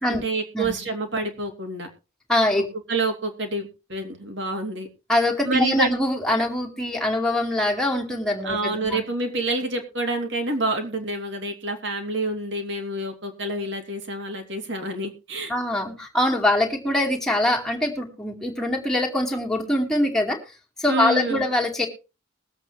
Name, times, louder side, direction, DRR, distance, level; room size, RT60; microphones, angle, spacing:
voice 1, 0.1-1.9 2.9-4.9 5.4-5.9 8.4-15.5 20.9-21.4, right 2 dB, 60° right, 4 dB, 2.8 m, -28 dB
voice 2, 2.3-2.7 5.1-9.0 15.5-20.4 20.8-21.9, left 1 dB, ahead, -1 dB, 2.4 m, -23 dB
21.5 x 8.2 x 3.3 m, 0.31 s
head